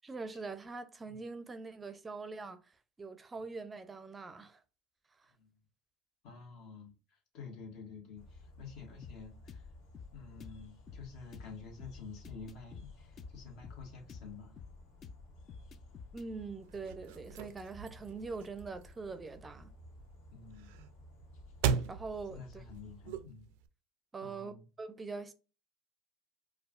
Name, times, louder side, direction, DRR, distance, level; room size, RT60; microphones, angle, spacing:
voice 1, 0.0-4.6 5.2-5.3 16.1-19.7 21.9-22.6 24.1-25.3, right 4 dB, 20° right, 0.5 m, -43 dB
voice 2, 6.2-9.7 10.1-14.6 15.6-15.7 17.8-18.0 20.3-20.7 21.7-21.9 22.3-23.5 24.2-24.6, left 5 dB, 65° left, 1.5 m, -50 dB
sound 1, 8.2-23.2, left 2 dB, 80° left, 1.5 m, -56 dB
sound 2, 9.0-16.3, left 5 dB, 45° left, 0.4 m, -51 dB
sound 3, 16.6-23.7, right 7 dB, 80° right, 0.3 m, -40 dB
4.7 x 2.4 x 2.4 m
supercardioid pair, 95°, 0 cm